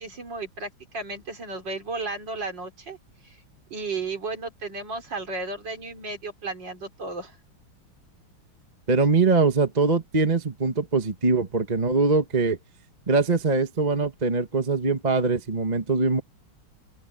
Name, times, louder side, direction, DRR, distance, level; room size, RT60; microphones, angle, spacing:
voice 1, 0.0-3.0 3.2-3.4 3.7-7.4, right 3 dB, 60° right, 4.5 m, -34 dB
voice 2, 8.9-12.6 13.1-16.2, right 3 dB, 20° right, 1.4 m, -22 dB
open air
omnidirectional pair, 2.2 m